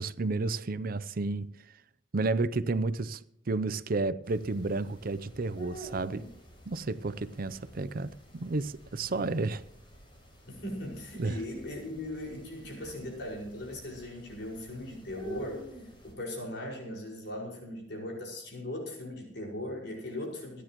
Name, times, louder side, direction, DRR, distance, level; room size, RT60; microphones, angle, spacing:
voice 1, 0.0-1.5 2.1-3.2 3.5-6.3 6.7-9.6 11.2-11.4, right 3 dB, 50° right, 0.6 m, -31 dB
sound 1, 4.2-16.1, right 1 dB, 25° left, 5.4 m, -50 dB
voice 2, 9.1-9.5 10.5-15.7 16.0-20.6, left 1 dB, 60° left, 5.3 m, -39 dB
27.0 x 10.0 x 3.0 m
head